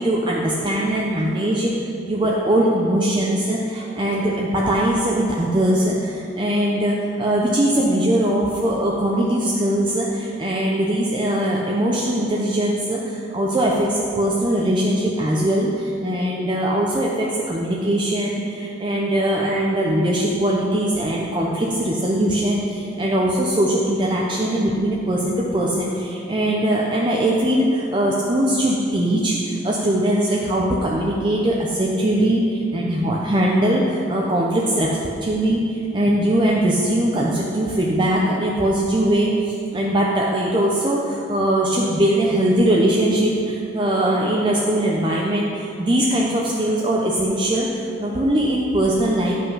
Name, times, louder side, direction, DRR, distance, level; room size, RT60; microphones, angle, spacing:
voice 1, 0.0-1.7 2.1-49.4, right 1 dB, 25° right, -3 dB, 0.7 m, -21 dB
9.9 x 5.6 x 5.6 m, 2.6 s
head